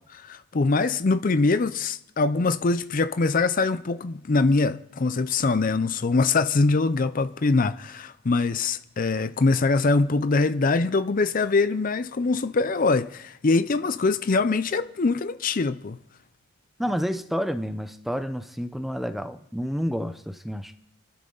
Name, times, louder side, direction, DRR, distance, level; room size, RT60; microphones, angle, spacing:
voice 1, 0.1-16.0, left 3 dB, 40° left, 0.5 m, -23 dB
voice 2, 16.8-20.8, equal, ahead, 0.7 m, -29 dB
29.5 x 12.0 x 3.9 m
head